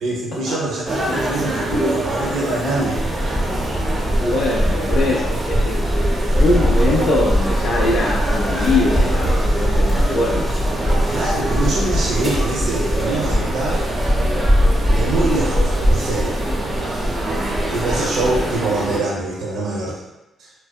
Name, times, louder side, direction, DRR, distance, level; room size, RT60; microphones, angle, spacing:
voice 1, 0.0-3.0 11.1-13.8 14.9-16.5 17.7-20.0 20.4-20.5, right 2 dB, 70° right, -4 dB, 0.6 m, -24 dB
sound 1, 0.9-19.0, right 1 dB, 30° right, 0.5 m, -23 dB
sound 2, 2.9-18.6, equal, 10° left, 0.7 m, -23 dB
voice 2, 4.2-5.8 6.4-10.5, left 2 dB, 55° left, -3 dB, 0.3 m, -22 dB
2.6 x 2.1 x 2.2 m, 0.99 s
cardioid pair, 90°, 0 cm